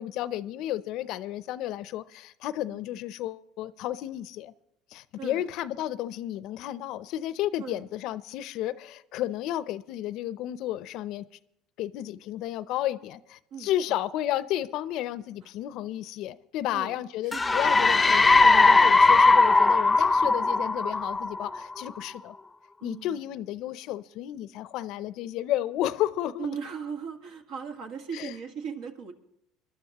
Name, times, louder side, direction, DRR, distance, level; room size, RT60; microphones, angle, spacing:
voice 1, 0.0-4.5 4.9-11.2 11.8-22.3 22.8-26.5 28.1-28.3, left 13 dB, 65° left, 0.6 m, -32 dB
voice 2, 13.5-14.0 15.4-15.5 16.7-17.0 17.2-17.9 20.2-20.4 22.8-23.2 26.4-29.1, right 6 dB, 70° right, 1.7 m, -38 dB
sound 1, 17.3-21.9, left 3 dB, 20° left, 0.5 m, -19 dB
22.5 x 12.0 x 3.0 m
hypercardioid pair, 80°, 0 cm